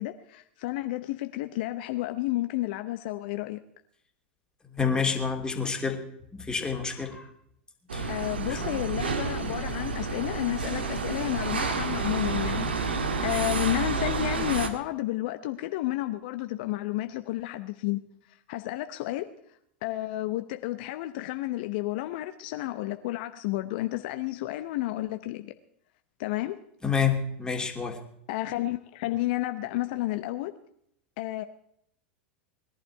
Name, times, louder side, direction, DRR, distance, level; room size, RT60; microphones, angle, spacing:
voice 1, 0.0-3.6 8.1-12.7 13.2-18.0 18.5-19.3 19.8-25.5 26.2-26.6 28.3-30.5 31.2-31.4, left 16 dB, 60° left, 8 dB, 0.8 m, -31 dB
voice 2, 4.7-6.0 6.3-7.3 7.9-8.1 8.5-8.8 26.8-28.0, left 6 dB, 15° left, 3 dB, 2.7 m, -28 dB
sound 1, 7.9-14.7, right 4 dB, 85° right, 1.6 m, -30 dB
20.5 x 11.5 x 4.6 m, 0.72 s
hypercardioid pair, 95°, 6 cm